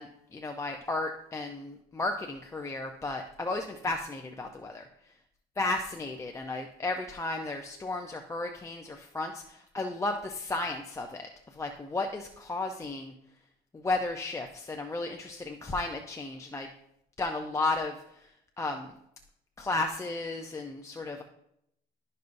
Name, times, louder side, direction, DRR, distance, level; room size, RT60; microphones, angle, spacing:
voice 1, 0.0-4.9 5.6-13.1 13.7-16.7 17.2-18.3 18.6-18.9 19.6-21.2, left 2 dB, 15° left, 3 dB, 0.6 m, -34 dB
12.0 x 5.4 x 2.6 m, 0.76 s
cardioid pair, 110°, 17 cm